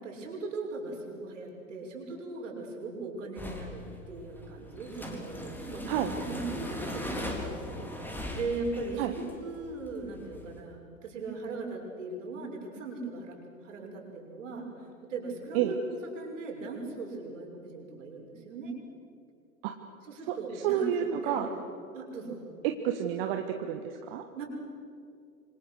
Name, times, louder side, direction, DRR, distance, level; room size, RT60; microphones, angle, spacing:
voice 1, 0.0-5.9 6.3-13.4 13.6-14.7 15.1-15.8 16.1-18.7 20.0-21.6 21.9-22.4 24.3-24.5, right 3 dB, 60° right, 0 dB, 6.5 m, -39 dB
sound 1, 3.4-10.6, left 1 dB, 5° left, 3.5 m, -40 dB
voice 2, 20.6-21.5 22.6-24.2, right 10 dB, 40° right, 5 dB, 1.6 m, -29 dB
27.0 x 26.0 x 6.5 m, 2.4 s
figure-of-eight pair, 95°, 41 cm